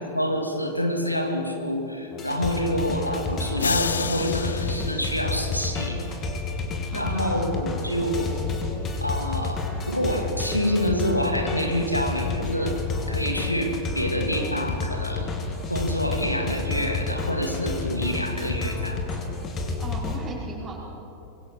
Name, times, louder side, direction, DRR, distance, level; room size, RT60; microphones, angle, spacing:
voice 1, 0.1-6.0 6.9-8.3 9.0-12.8 13.1-15.3 15.7-19.0, equal, 90° left, 4 dB, 2.1 m, -27 dB
sound 1, 2.1-20.3, left 3 dB, 25° left, 2.7 m, -30 dB
sound 2, 3.6-5.9, left 6 dB, 70° left, 0.5 m, -31 dB
voice 2, 6.9-7.5 17.6-17.7 19.8-20.8, right 2 dB, 20° right, -3 dB, 5.2 m, -37 dB
25.5 x 22.5 x 4.8 m, 2.9 s
figure-of-eight pair, 90°, 0 cm